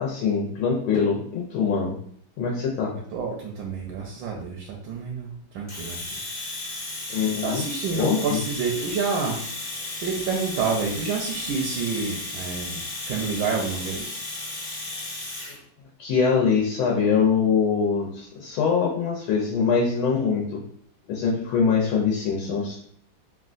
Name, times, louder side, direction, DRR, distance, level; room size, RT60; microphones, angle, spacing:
voice 1, 0.0-2.0 2.4-2.9 7.1-7.7 8.0-8.4 16.0-20.6 21.1-22.8, left 6 dB, 85° left, -2 dB, 1.5 m, -23 dB
voice 2, 3.1-6.0 7.4-9.4 10.0-14.2, right 5 dB, 75° right, -1 dB, 1.2 m, -28 dB
Domestic sounds home sounds, 5.7-15.6, left 2 dB, 45° left, 1.1 m, -34 dB
3.7 x 2.2 x 2.4 m, 0.62 s
omnidirectional pair, 2.2 m